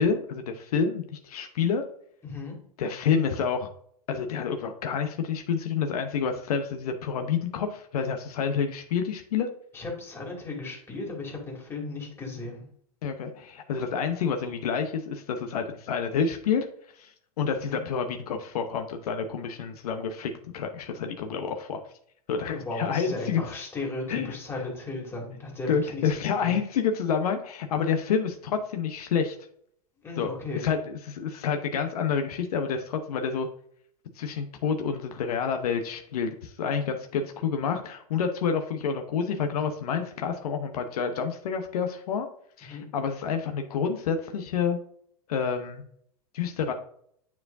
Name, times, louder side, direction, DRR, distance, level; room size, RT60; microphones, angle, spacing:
voice 1, 0.0-1.8 2.8-3.7 4.1-9.5 13.0-16.7 17.0-21.8 22.3-23.4 24.1-24.3 25.7-29.4 30.2-33.5 34.1-42.3 42.6-44.8 45.3-45.8 46.3-46.7, left 6 dB, 70° left, 5 dB, 0.9 m, -28 dB
voice 2, 2.2-2.6 9.7-12.7 17.5-17.8 22.3-26.6 30.0-30.6 42.7-42.8, left 2 dB, 10° left, -2 dB, 2.4 m, -36 dB
9.6 x 4.7 x 2.7 m, 0.64 s
hypercardioid pair, 125°, 20 cm